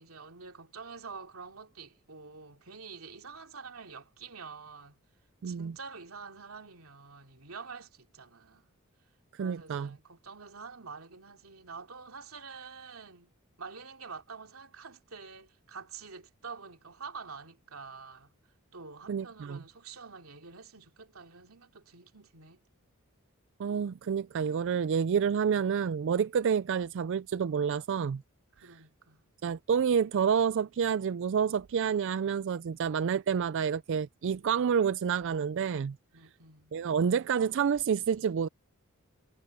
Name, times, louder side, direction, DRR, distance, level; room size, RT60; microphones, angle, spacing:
voice 1, 0.0-5.0 5.4-8.7 9.4-18.3 18.7-22.6 28.5-29.2 36.1-36.7, right 5 dB, 90° right, 2.8 m, -47 dB
voice 2, 5.4-5.7 9.3-9.9 19.1-19.6 23.6-28.2 29.4-36.0 36.7-38.5, right 7 dB, 60° right, 0.4 m, -28 dB
head